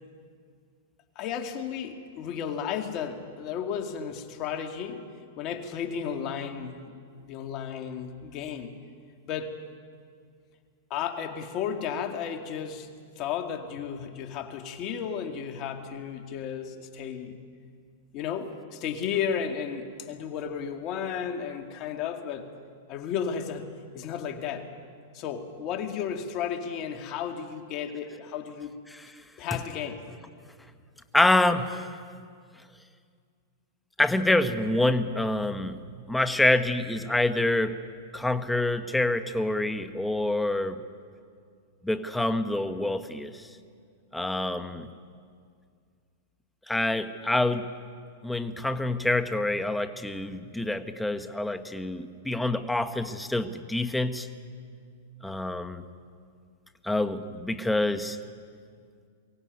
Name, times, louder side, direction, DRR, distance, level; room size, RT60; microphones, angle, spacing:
voice 1, 1.2-5.1 5.4-6.8 7.3-8.8 9.3-9.6 10.9-12.9 13.2-17.4 18.1-22.5 22.9-24.7 25.1-28.7 29.4-30.0, left 7 dB, 40° left, 5 dB, 2.2 m, -33 dB
voice 2, 31.1-32.0 34.0-35.8 36.1-37.7 38.1-40.8 41.8-43.5 44.1-44.9 46.7-47.7 48.2-54.3 55.2-55.8 56.8-58.2, left 2 dB, 5° left, 10 dB, 1.1 m, -26 dB
23.0 x 16.5 x 9.4 m, 2.1 s
hypercardioid pair, 130°, 0 cm